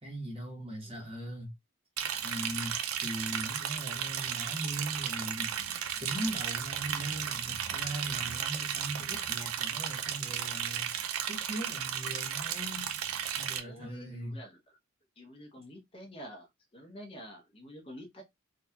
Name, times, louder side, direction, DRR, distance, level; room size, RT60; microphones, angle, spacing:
voice 1, 0.0-1.5 2.2-5.5 6.0-10.9 11.2-12.9 13.4-14.4, right 1 dB, 25° right, 1.0 m, -39 dB
voice 2, 0.6-1.1 13.6-14.8 15.2-18.2, equal, 25° left, 1.0 m, -48 dB
Liquid, 2.0-13.6, right 9 dB, 80° right, 0.5 m, -34 dB
3.9 x 2.4 x 2.8 m
head